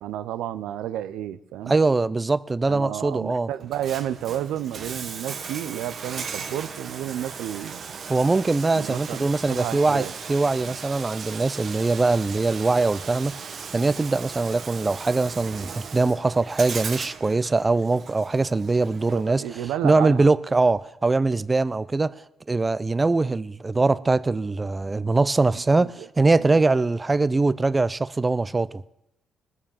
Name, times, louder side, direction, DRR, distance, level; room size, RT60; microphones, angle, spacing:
voice 1, 0.0-1.7 2.7-7.8 8.7-10.1 10.6-10.8 19.1-20.3 25.5-26.1 26.4-26.6, right 11 dB, 90° right, 0.6 m, -31 dB
voice 2, 1.7-3.5 8.1-19.4 19.8-28.8, right 3 dB, 25° right, 0.5 m, -22 dB
Bathtub (filling or washing), 3.6-19.6, right 6 dB, 50° right, 1.0 m, -37 dB
20.0 x 6.9 x 7.3 m
cardioid pair, 90°, 0 cm